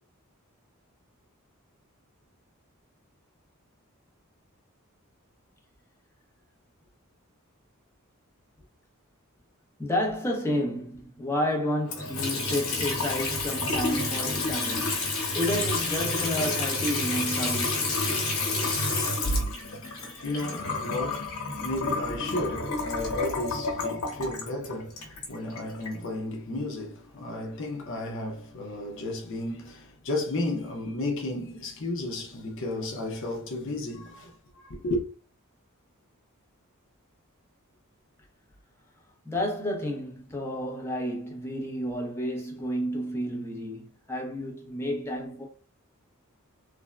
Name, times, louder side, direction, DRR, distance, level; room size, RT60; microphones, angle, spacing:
voice 1, 9.8-17.9 39.2-45.4, equal, 10° left, 0.7 m, -31 dB
Water tap faucet / Sink (filling or washing) / Trickle dribble, 11.8-26.0, left 3 dB, 85° left, 1.0 m, -29 dB
voice 2, 19.5-35.0, left 1 dB, 65° left, 0.6 m, -33 dB
3.4 x 2.0 x 2.3 m
head